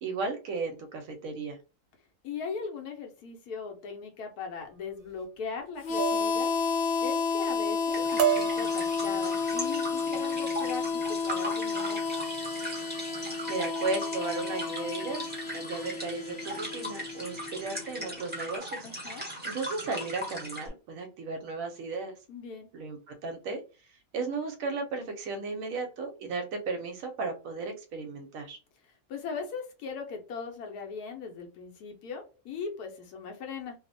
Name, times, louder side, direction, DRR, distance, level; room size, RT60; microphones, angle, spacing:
voice 1, 0.0-1.6 13.2-18.9 19.4-22.1 22.7-23.6 24.1-28.6, right 3 dB, 70° right, 5 dB, 1.0 m, -35 dB
voice 2, 2.2-6.5 7.0-12.2 18.8-19.3 22.3-22.7 29.1-33.7, left 5 dB, 85° left, 3 dB, 1.2 m, -39 dB
sound 1, 5.0-5.3 6.0-6.3 6.6-7.1 7.5-7.8 8.2-9.5 10.1-10.3 10.7-11.1, right 12 dB, 90° right, 1.1 m, -32 dB
Harmonica, 5.8-18.5, left 5 dB, 65° left, 0.8 m, -31 dB
sound 2, 7.9-20.7, equal, 10° right, 0.7 m, -39 dB
2.8 x 2.0 x 2.5 m, 0.33 s
omnidirectional pair, 1.6 m